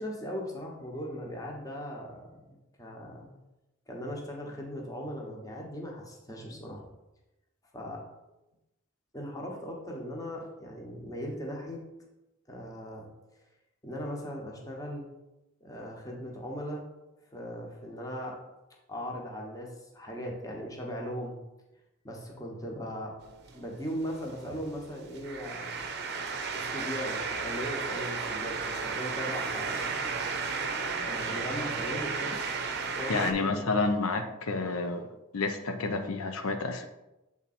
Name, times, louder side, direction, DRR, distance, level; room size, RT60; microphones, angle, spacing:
voice 1, 0.0-3.3 3.9-6.8 7.7-8.0 9.1-11.8 12.5-13.1 13.8-15.1 15.6-16.9 17.3-18.4 18.9-21.4 22.0-23.1 23.5-25.9 26.5-30.1 31.0-32.4 33.0-33.6, equal, 15° left, -1 dB, 1.1 m, -38 dB
sound 1, 23.2-33.3, right 5 dB, 50° right, 0.6 m, -34 dB
voice 2, 33.1-35.1 35.3-36.9, left 3 dB, 90° left, 6 dB, 0.6 m, -29 dB
7.1 x 3.6 x 4.2 m, 0.97 s
head